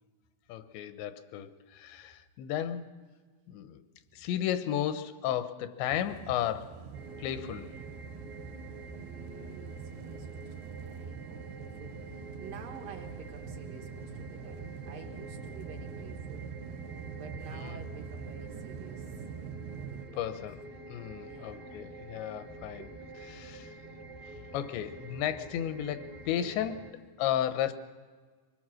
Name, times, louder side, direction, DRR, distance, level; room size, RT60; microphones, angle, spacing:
voice 1, 0.5-2.9 3.5-3.8 4.1-6.8 7.2-7.7 17.5-17.9 20.2-22.9 23.3-23.7 24.5-27.7, left 10 dB, 80° left, 11 dB, 3.1 m, -34 dB
sound 1, 5.9-20.1, right 7 dB, 85° right, 1.9 m, -44 dB
sound 2, 6.9-26.9, right 2 dB, 30° right, 0.7 m, -47 dB
voice 2, 8.9-16.5 17.1-19.2 19.9-20.3 21.2-21.9 22.8-23.0 24.1-24.2, right 6 dB, 65° right, 3 dB, 2.5 m, -51 dB
24.0 x 21.0 x 6.3 m, 1.5 s
omnidirectional pair, 5.1 m